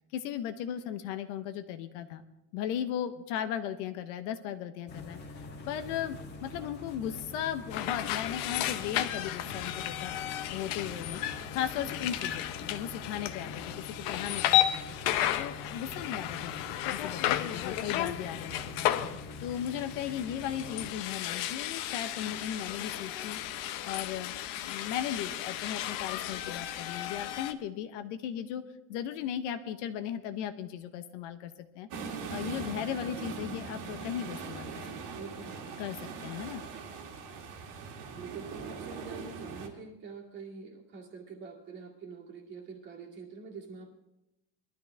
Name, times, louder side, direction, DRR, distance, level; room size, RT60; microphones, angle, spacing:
voice 1, 0.1-2.2 2.5-10.2 10.5-11.2 11.5-14.8 15.4-23.4 23.8-24.3 24.6-28.6 28.9-31.9 32.3-34.9 35.8-36.6, left 10 dB, 60° left, 9 dB, 1.0 m, -37 dB
sound 1, 4.9-20.9, left 2 dB, 25° left, 1.6 m, -45 dB
sound 2, 7.7-27.5, left 13 dB, 45° left, 0.7 m, -33 dB
sound 3, 31.9-39.7, right 5 dB, 45° right, 2.2 m, -41 dB
voice 2, 35.1-35.8 38.1-44.0, right 5 dB, 25° right, -1 dB, 2.2 m, -45 dB
21.0 x 12.5 x 3.4 m, 0.91 s
cardioid pair, 180°, 40 cm